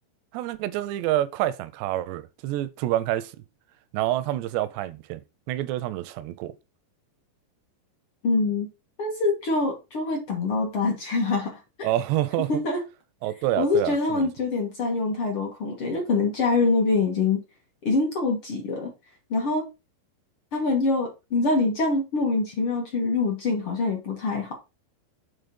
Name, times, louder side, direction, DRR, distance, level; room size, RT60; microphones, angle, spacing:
voice 1, 0.3-3.3 3.9-5.2 5.5-6.5 11.8-12.6 13.2-14.3, right 14 dB, 85° right, 2.7 m, -27 dB
voice 2, 8.2-8.7 9.0-11.9 12.5-12.8 13.6-17.4 17.8-18.9 19.3-19.7 20.5-24.7, left 3 dB, 65° left, 1.3 m, -25 dB
8.1 x 3.7 x 5.2 m
omnidirectional pair, 5.0 m